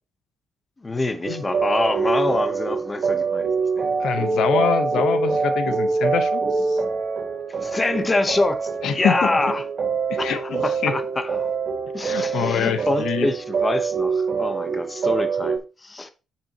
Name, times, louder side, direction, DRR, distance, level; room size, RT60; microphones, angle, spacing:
voice 1, 0.8-3.9 7.5-9.7 10.2-11.5 11.9-16.1, left 2 dB, 25° left, 1.0 m, -26 dB
sound 1, 1.2-15.6, right 5 dB, 45° right, 2.6 m, -25 dB
voice 2, 4.0-6.8 8.8-9.3 10.1-10.9 12.0-13.3, left 8 dB, 75° left, 1.0 m, -25 dB
9.1 x 7.3 x 3.0 m
cardioid pair, 90°, 0 cm